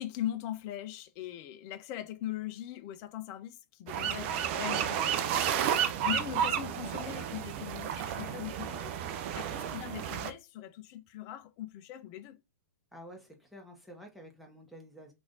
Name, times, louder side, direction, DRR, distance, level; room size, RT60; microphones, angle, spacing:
voice 1, 0.0-5.3 6.0-8.9 9.3-12.4, left 12 dB, 40° left, 0.5 m, -40 dB
sound 1, 3.9-10.3, right 9 dB, 45° right, 0.5 m, -32 dB
voice 2, 12.9-15.1, equal, ahead, 1.1 m, -51 dB
3.2 x 2.6 x 3.8 m
hypercardioid pair, 115°, 9 cm